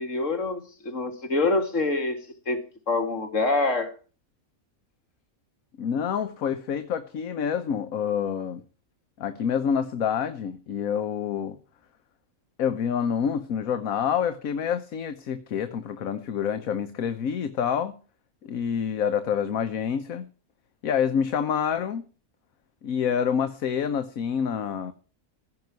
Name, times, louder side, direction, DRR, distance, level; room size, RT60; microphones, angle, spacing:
voice 1, 0.0-2.2 2.5-2.6 2.9-3.9, left 3 dB, 60° left, 2.6 m, -25 dB
voice 2, 5.8-8.6 9.2-11.6 12.6-17.9 18.4-20.3 20.8-22.0 22.8-24.9, left 7 dB, 75° left, 1.3 m, -27 dB
15.5 x 5.9 x 9.3 m
omnidirectional pair, 1.5 m